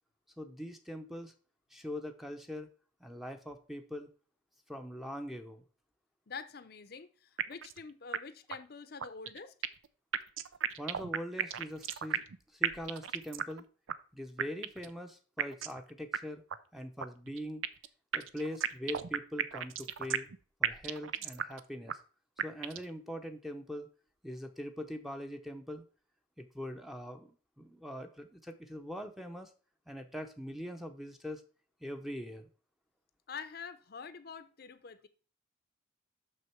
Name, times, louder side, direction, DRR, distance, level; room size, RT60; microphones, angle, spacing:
voice 1, 0.4-1.3 1.7-2.7 3.0-4.1 4.7-5.6 10.8-12.2 12.5-13.7 14.1-16.4 16.7-17.7 18.1-20.3 20.6-22.0 22.4-23.9 24.2-25.8 26.4-29.5 29.9-31.4 31.8-32.5, equal, ahead, 0.7 m, -42 dB
voice 2, 6.3-9.5 33.3-35.1, left 5 dB, 50° left, 0.6 m, -46 dB
sound 1, 7.4-7.8 8.1-8.2 8.5-8.6 9.0-9.9 10.1-12.4 12.6-13.6 13.9-14.0 14.4-14.9 15.4-15.8 16.1-16.2 16.5-16.6 17.0-17.9 18.1-20.4 20.6-21.6 21.9-22.0 22.4-22.9, right 8 dB, 90° right, 0.5 m, -34 dB
6.3 x 6.2 x 4.5 m
head